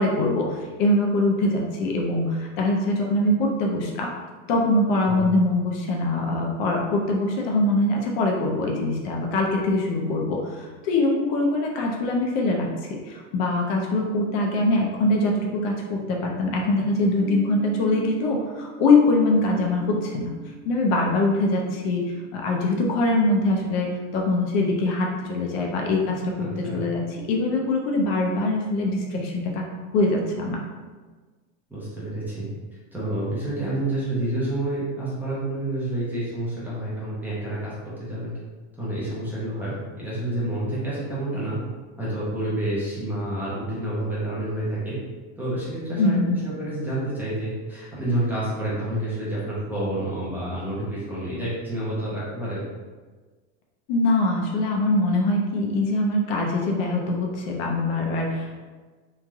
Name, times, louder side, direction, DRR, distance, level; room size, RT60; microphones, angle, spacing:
voice 1, 0.0-4.1 4.5-12.7 13.1-20.3 20.6-27.0 27.3-29.7 29.9-30.6 46.0-46.4 53.9-58.6, left 2 dB, 55° left, 0 dB, 0.6 m, -23 dB
sound 1, 17.2-25.0, right 4 dB, 60° right, 0.6 m, -43 dB
voice 2, 26.4-26.8 31.7-32.5 32.9-37.7 38.1-38.3 38.8-41.6 42.0-45.0 45.4-52.6, right 1 dB, 5° right, -10 dB, 0.5 m, -29 dB
3.1 x 2.5 x 2.3 m, 1.4 s
supercardioid pair, 155°, 36 cm